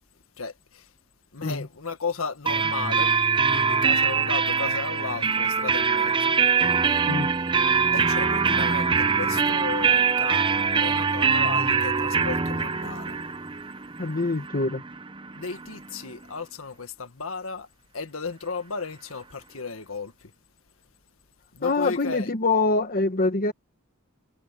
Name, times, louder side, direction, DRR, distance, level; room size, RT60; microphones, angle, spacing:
voice 1, 0.4-0.9 1.3-3.1 3.5-7.0 7.9-13.2 15.3-17.7 17.9-20.3 21.5-22.3, left 4 dB, 75° left, 1.7 m, -35 dB
sound 1, 2.5-16.0, right 5 dB, 25° right, 0.8 m, -23 dB
voice 2, 14.0-14.8 21.6-23.5, left 3 dB, 45° left, 1.2 m, -24 dB
head